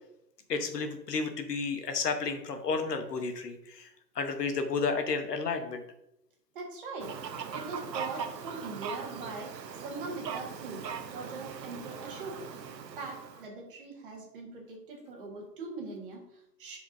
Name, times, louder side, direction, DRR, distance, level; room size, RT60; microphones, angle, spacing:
voice 1, 0.5-3.9 4.1-5.8, left 4 dB, 70° left, 6 dB, 1.2 m, -32 dB
voice 2, 6.5-7.2 7.5-16.8, right 3 dB, 30° right, -1 dB, 1.8 m, -42 dB
Fowl, 7.0-13.5, right 7 dB, 80° right, 1.0 m, -40 dB
10.5 x 4.9 x 2.7 m, 0.82 s
hypercardioid pair, 165°, 49 cm